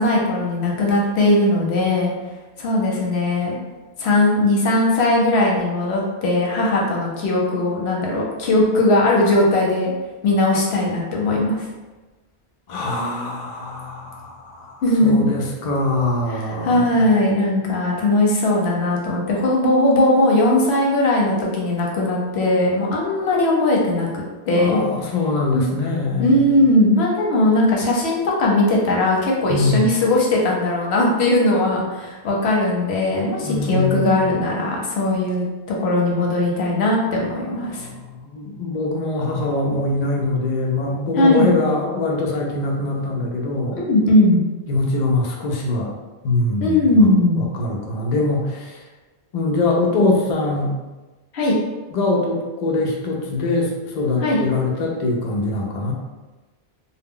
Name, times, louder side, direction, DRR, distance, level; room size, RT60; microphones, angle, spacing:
voice 1, 0.0-2.1 2.6-3.6 4.0-9.9 10.2-11.6 14.8-15.2 16.3-24.1 24.5-24.8 25.5-25.6 26.2-37.9 41.2-41.5 43.7-44.4 46.6-47.4 51.3-51.5 54.2-54.4, left 1 dB, 75° left, -2 dB, 0.9 m, -19 dB
voice 2, 12.7-16.8 24.5-26.6 29.5-30.0 33.4-34.3 37.1-43.8 44.7-45.9 46.2-47.1 47.3-48.8 49.3-50.8 51.9-55.9, left 2 dB, 55° left, -1 dB, 0.5 m, -23 dB
2.1 x 2.1 x 3.5 m, 1.2 s
omnidirectional pair, 1.1 m